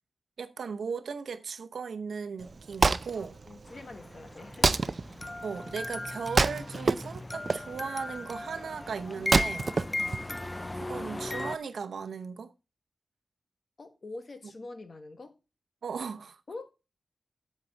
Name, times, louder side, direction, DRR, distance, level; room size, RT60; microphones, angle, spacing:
voice 1, 0.4-3.4 5.4-9.7 10.7-12.5 15.8-16.4, right 5 dB, 90° right, 0.8 m, -37 dB
Wood, 2.4-10.7, right 3 dB, 45° right, 0.5 m, -29 dB
voice 2, 3.2-4.9 10.0-10.2 13.8-15.3 16.5-16.7, left 2 dB, 50° left, 1.4 m, -45 dB
sound 1, 3.7-11.6, left 2 dB, 20° left, 0.4 m, -37 dB
8.5 x 7.5 x 4.0 m
wide cardioid pair, 100°, 0 cm